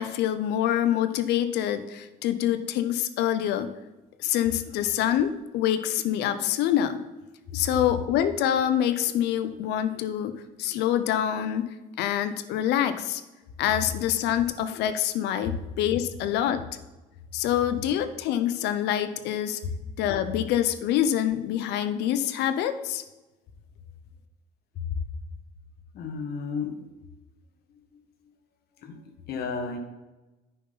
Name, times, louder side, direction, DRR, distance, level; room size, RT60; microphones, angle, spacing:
voice 1, 0.0-3.7 4.2-7.0 7.5-13.2 13.6-16.6 17.3-19.6 20.0-23.0, left 10 dB, 85° left, 11 dB, 0.7 m, -26 dB
voice 2, 25.9-26.8 28.8-29.0 29.3-29.8, left 5 dB, 70° left, 6 dB, 1.5 m, -32 dB
9.6 x 6.6 x 4.0 m, 1.1 s
cardioid pair, 110°, 17 cm